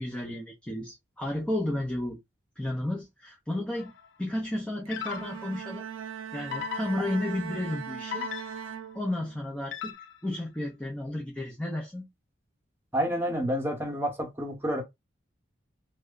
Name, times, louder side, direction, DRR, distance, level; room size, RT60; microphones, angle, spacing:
voice 1, 0.0-2.2 2.6-3.9 4.2-5.8 6.3-8.3 8.9-9.9 10.2-12.1, left 1 dB, 5° left, 0.5 m, -32 dB
sound 1, 3.8-4.1 4.9-5.6 6.5-7.4 8.1-8.9 9.7-10.4, left 8 dB, 65° left, 0.5 m, -38 dB
Bowed string instrument, 4.9-9.5, right 8 dB, 90° right, 0.5 m, -40 dB
voice 2, 12.9-14.8, equal, 10° right, 1.0 m, -29 dB
3.2 x 2.1 x 3.8 m
head